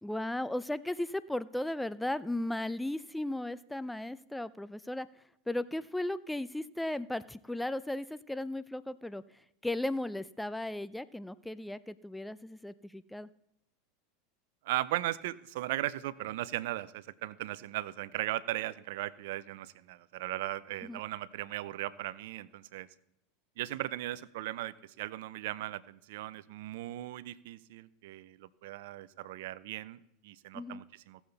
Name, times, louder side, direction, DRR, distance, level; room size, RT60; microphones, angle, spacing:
voice 1, 0.0-5.1 5.5-9.2 9.6-13.3 20.8-21.0 30.5-30.8, left 1 dB, 5° left, 16 dB, 0.4 m, -36 dB
voice 2, 14.6-22.9 23.6-31.2, right 15 dB, 70° right, 17 dB, 0.5 m, -37 dB
17.0 x 7.1 x 4.0 m, 0.79 s
hypercardioid pair, 100°, 0 cm